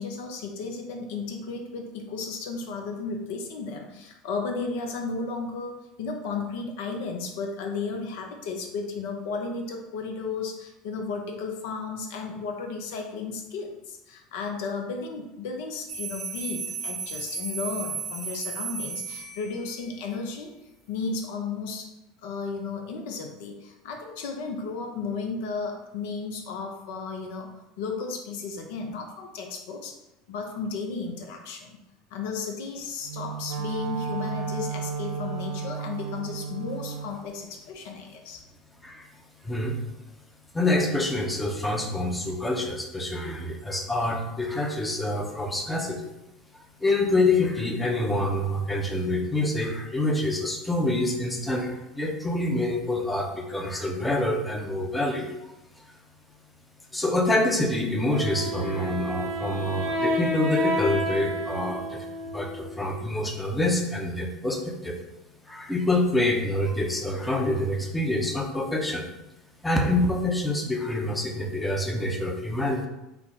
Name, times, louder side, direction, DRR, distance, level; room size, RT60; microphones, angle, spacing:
voice 1, 0.0-20.5 20.9-21.9 22.2-30.0 30.3-31.8 32.1-38.4, left 4 dB, 65° left, 3 dB, 0.4 m, -34 dB
sound 1, 15.9-19.9, right 5 dB, 35° right, 0.6 m, -34 dB
Wind instrument woodwind instrument, 33.0-37.1, right 6 dB, 85° right, 0.5 m, -33 dB
voice 2, 39.4-39.8 40.5-46.1 46.8-55.3 56.9-62.1 62.3-65.0 65.5-69.1 69.6-72.9, left 1 dB, 10° left, 2 dB, 0.6 m, -26 dB
Wind instrument woodwind instrument 2, 58.1-62.9, equal, 60° right, 0.9 m, -30 dB
3.3 x 2.0 x 3.7 m, 0.92 s
hypercardioid pair, 75°, 0 cm